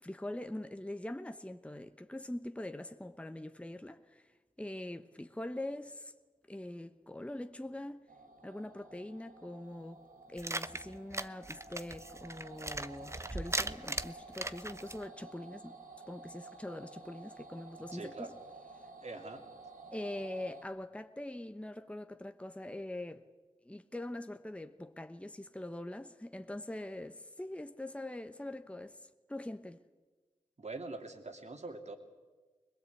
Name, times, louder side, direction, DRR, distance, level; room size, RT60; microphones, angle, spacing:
voice 1, 0.0-4.3 4.6-6.1 6.5-8.1 8.4-15.8 16.1-18.3 19.9-23.2 23.6-29.8, left 1 dB, 10° left, 1.0 m, -43 dB
sound 1, 8.1-20.6, right 3 dB, 85° right, 4.4 m, -53 dB
sound 2, 10.4-15.0, right 2 dB, 20° right, 0.9 m, -39 dB
voice 2, 17.9-18.3 19.0-19.4 30.6-32.0, right 3 dB, 55° right, 2.9 m, -43 dB
22.5 x 21.0 x 8.5 m
cardioid pair, 50°, 14 cm